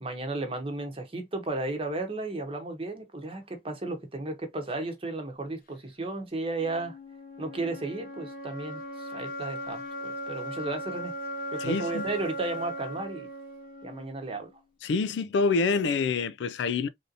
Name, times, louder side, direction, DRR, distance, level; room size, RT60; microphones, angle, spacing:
voice 1, 0.0-7.0 7.4-11.1 11.5-13.3 13.8-14.5, right 2 dB, 35° right, 0.9 m, -34 dB
sound 1, 6.6-14.6, equal, 55° left, 0.7 m, -38 dB
voice 2, 11.6-12.1 14.8-16.9, left 4 dB, 80° left, 0.3 m, -26 dB
3.4 x 2.7 x 2.5 m
head